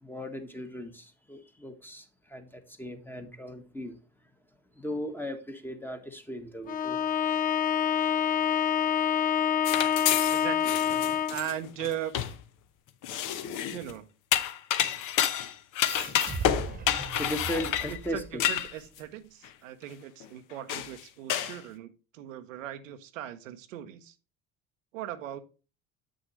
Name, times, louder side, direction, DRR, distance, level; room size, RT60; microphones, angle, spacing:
voice 1, 0.0-2.0 2.3-4.0 4.8-7.0 17.1-18.4, left 1 dB, 5° left, 6 dB, 1.2 m, -37 dB
Bowed string instrument, 6.7-11.5, left 8 dB, 25° left, 0.4 m, -26 dB
sound 1, 9.7-12.4 13.0-13.9 14.3-19.0 19.4-19.5 20.2-20.3 20.7-21.0 21.3-21.6, left 11 dB, 55° left, 0.9 m, -29 dB
voice 2, 10.3-10.8 11.3-12.1 13.7-14.1 17.9-24.1 24.9-25.4, right 11 dB, 90° right, 9 dB, 0.8 m, -38 dB
sound 2, 15.8-18.9, right 4 dB, 25° right, 1.1 m, -38 dB
7.8 x 6.4 x 3.0 m, 0.33 s
hypercardioid pair, 80°, 38 cm